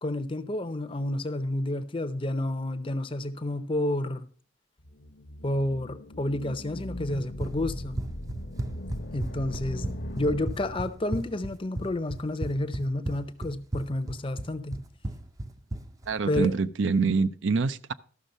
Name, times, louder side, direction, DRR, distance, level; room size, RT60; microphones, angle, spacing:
voice 1, 0.0-4.3 5.4-8.0 9.1-14.8 16.3-16.5, left 1 dB, 25° left, 0.6 m, -30 dB
sound 1, 4.8-11.2, equal, 65° left, 0.9 m, -39 dB
Run, 7.1-16.6, right 1 dB, 20° right, 0.5 m, -35 dB
voice 2, 16.1-17.9, right 4 dB, 75° right, 0.5 m, -25 dB
13.0 x 6.3 x 5.3 m
head